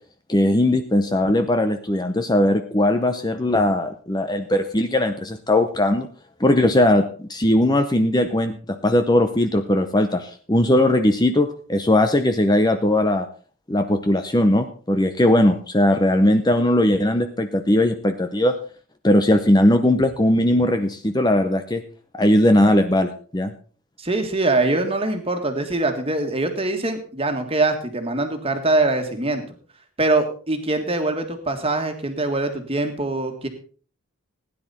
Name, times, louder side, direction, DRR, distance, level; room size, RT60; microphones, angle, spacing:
voice 1, 0.3-6.1 6.4-13.3 13.7-18.6 19.0-21.8 22.1-23.5, left 1 dB, 20° left, 8 dB, 0.7 m, -19 dB
voice 2, 24.0-29.4 30.0-33.5, right 2 dB, 25° right, 5 dB, 1.8 m, -23 dB
16.0 x 10.0 x 4.2 m, 0.40 s
head